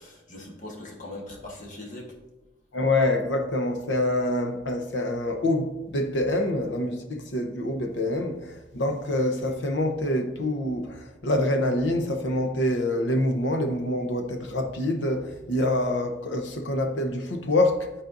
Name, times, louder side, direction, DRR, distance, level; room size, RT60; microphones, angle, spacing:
voice 1, 0.0-2.1, left 1 dB, 45° left, 1.3 m, -40 dB
voice 2, 2.7-18.0, left 1 dB, 75° left, 0.8 m, -26 dB
11.5 x 4.2 x 2.6 m
head